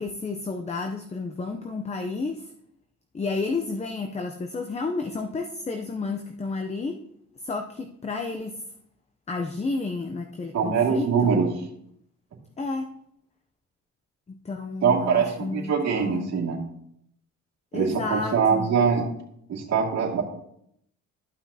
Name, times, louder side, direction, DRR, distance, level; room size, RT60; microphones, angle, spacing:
voice 1, 0.0-2.5 3.1-7.0 7.4-8.6 9.3-11.3 12.6-12.9 14.3-16.4 17.7-18.7, left 3 dB, 20° left, 5 dB, 0.6 m, -31 dB
voice 2, 10.5-11.4 14.8-16.6 17.7-19.0 19.5-20.2, right 6 dB, 60° right, -3 dB, 2.3 m, -23 dB
14.0 x 5.8 x 2.8 m, 0.73 s
cardioid pair, 90°, 30 cm